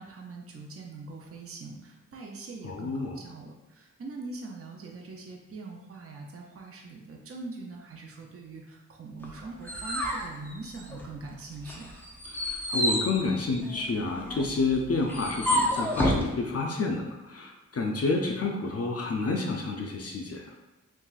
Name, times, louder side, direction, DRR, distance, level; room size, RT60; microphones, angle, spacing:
voice 1, 0.0-12.0, right 3 dB, 50° right, 0 dB, 0.5 m, -42 dB
voice 2, 2.6-3.2 12.3-20.5, left 3 dB, 50° left, 1 dB, 0.5 m, -29 dB
sound 1, 9.2-11.2 11.6-16.3, equal, 5° left, 0.5 m, -30 dB
6.0 x 2.3 x 2.4 m, 1.1 s
wide cardioid pair, 120°, 31 cm